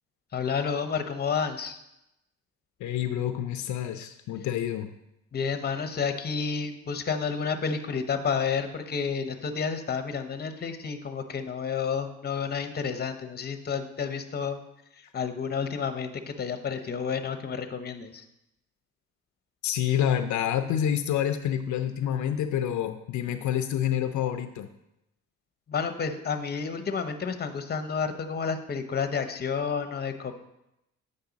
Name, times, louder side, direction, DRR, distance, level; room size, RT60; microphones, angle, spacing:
voice 1, 0.3-1.8 5.3-14.6 14.9-18.2 25.7-30.3, left 6 dB, 35° left, 9 dB, 0.8 m, -30 dB
voice 2, 2.8-4.9 19.6-24.7, left 10 dB, 75° left, 8 dB, 0.5 m, -28 dB
8.2 x 5.4 x 3.9 m, 0.87 s
cardioid pair, 90°, 30 cm